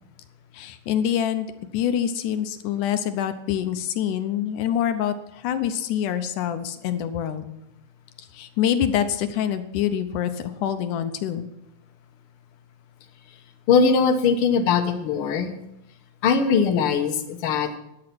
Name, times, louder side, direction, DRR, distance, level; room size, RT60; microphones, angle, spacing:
voice 1, 0.5-1.5 1.7-7.5 8.2-11.5, left 9 dB, 75° left, 10 dB, 2.2 m, -26 dB
voice 2, 13.7-15.5 16.2-17.8, left 5 dB, 60° left, 6 dB, 1.6 m, -20 dB
13.5 x 10.0 x 6.0 m, 0.86 s
omnidirectional pair, 3.9 m